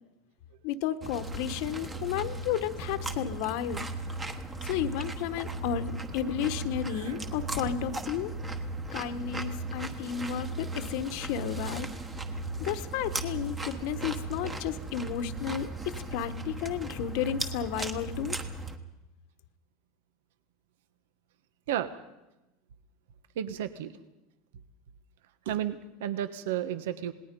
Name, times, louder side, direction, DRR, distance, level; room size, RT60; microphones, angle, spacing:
voice 1, 0.6-3.8 4.6-8.3 8.9-11.9 12.6-18.4, left 10 dB, 50° left, 10 dB, 1.1 m, -32 dB
sound 1, 1.0-18.8, right 2 dB, 10° right, 1.2 m, -37 dB
voice 2, 6.9-7.4 21.7-21.9 23.4-23.9 25.4-27.1, right 10 dB, 75° right, 12 dB, 1.2 m, -33 dB
27.5 x 20.0 x 5.3 m, 0.97 s
supercardioid pair, 180°, 0 cm